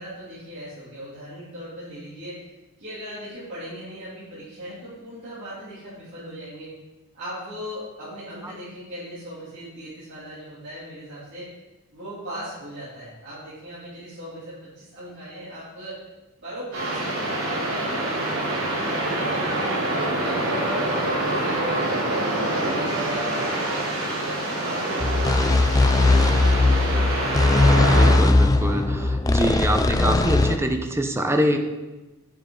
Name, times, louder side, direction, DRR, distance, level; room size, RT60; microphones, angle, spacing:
voice 1, 0.0-2.4 2.8-6.7 7.1-11.5 11.9-16.0 16.4-21.6 22.0-25.9, equal, 50° right, -12 dB, 3.1 m, -38 dB
sound 1, 16.7-28.1, right 1 dB, 70° right, 3.0 m, -26 dB
sound 2, 25.0-30.6, left 2 dB, 15° left, 0.4 m, -19 dB
voice 2, 28.0-31.6, equal, 10° right, 5 dB, 0.7 m, -24 dB
9.1 x 7.4 x 3.8 m, 1.1 s
head